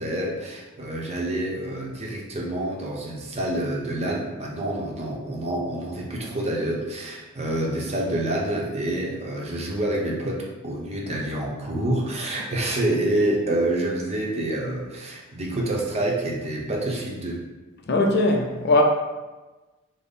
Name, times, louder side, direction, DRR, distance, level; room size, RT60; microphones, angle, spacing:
voice 1, 0.0-17.4, right 1 dB, 30° right, -2 dB, 0.7 m, -27 dB
voice 2, 17.9-18.8, left 2 dB, 50° left, 2 dB, 0.5 m, -20 dB
5.1 x 2.1 x 4.0 m, 1.2 s
head